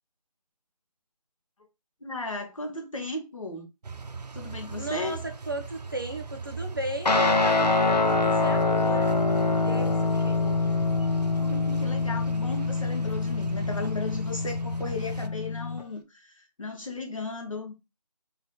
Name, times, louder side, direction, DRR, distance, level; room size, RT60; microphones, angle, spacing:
voice 1, 2.0-3.7 4.3-5.2 11.4-17.7, left 3 dB, 50° left, 1.5 m, -35 dB
sound 1, 3.8-15.3, right 4 dB, 75° right, 0.6 m, -39 dB
voice 2, 4.7-9.2 9.6-10.6, right 1 dB, 35° right, 0.6 m, -36 dB
Guitar, 7.1-15.8, left 3 dB, 90° left, 1.0 m, -25 dB
4.1 x 3.1 x 4.0 m
figure-of-eight pair, 180°, 21 cm